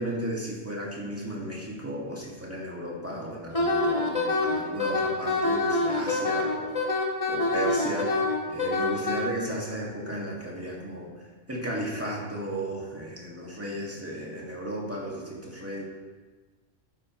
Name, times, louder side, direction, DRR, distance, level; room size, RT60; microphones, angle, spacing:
voice 1, 0.0-6.7 7.3-8.1 8.5-11.1 11.5-15.8, right 1 dB, 10° right, -4 dB, 2.0 m, -34 dB
Wind instrument woodwind instrument, 3.5-9.2, left 2 dB, 30° left, 1.3 m, -26 dB
12.5 x 9.8 x 3.2 m, 1.4 s
omnidirectional pair, 1.3 m